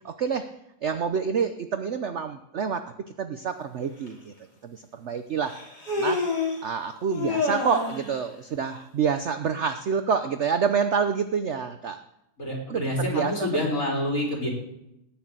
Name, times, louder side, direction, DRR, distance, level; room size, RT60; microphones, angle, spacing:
voice 1, 0.0-0.5 0.8-2.8 3.2-4.3 4.6-5.5 6.0-6.2 6.6-12.0 12.7-13.3, right 6 dB, 55° right, 9 dB, 0.8 m, -27 dB
Human voice, 4.1-4.2 5.4-6.6 7.1-8.1, left 3 dB, 65° left, 3.9 m, -28 dB
voice 2, 12.4-14.5, left 1 dB, 50° left, -2 dB, 4.1 m, -27 dB
18.5 x 6.4 x 8.8 m, 0.83 s
omnidirectional pair, 1.9 m